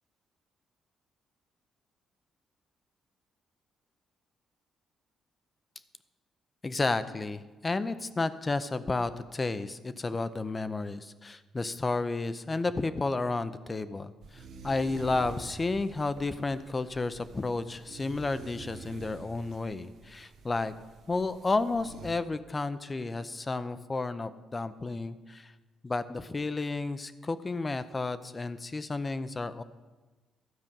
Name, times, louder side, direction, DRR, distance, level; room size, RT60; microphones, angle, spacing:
voice 1, 6.6-20.7 21.1-25.5 25.8-29.6, left 3 dB, 25° left, 13 dB, 0.6 m, -32 dB
sound 1, 14.2-22.1, right 4 dB, 75° right, 1.0 m, -48 dB
12.5 x 5.1 x 7.4 m, 1.2 s
cardioid pair, 90°, 0 cm